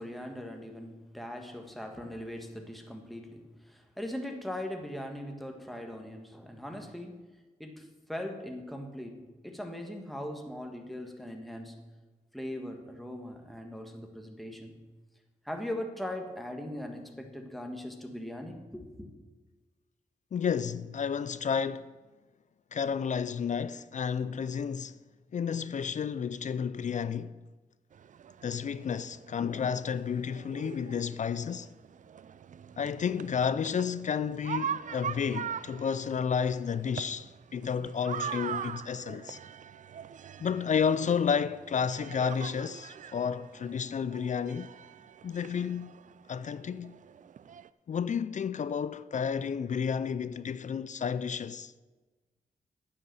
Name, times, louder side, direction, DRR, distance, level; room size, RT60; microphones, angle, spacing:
voice 1, 0.0-7.2 7.6-11.8 12.3-14.8 15.4-19.1, left 1 dB, ahead, 1.7 m, -40 dB
voice 2, 20.3-21.9 22.7-25.0 25.3-27.4 28.4-31.7 32.8-39.4 40.4-44.7 45.2-45.9 46.3-46.9 47.9-51.7, left 7 dB, 55° left, 0.4 m, -31 dB
sound 1, 27.9-47.7, right 8 dB, 55° right, 0.4 m, -42 dB
9.2 x 6.6 x 7.1 m
cardioid pair, 60°, 15 cm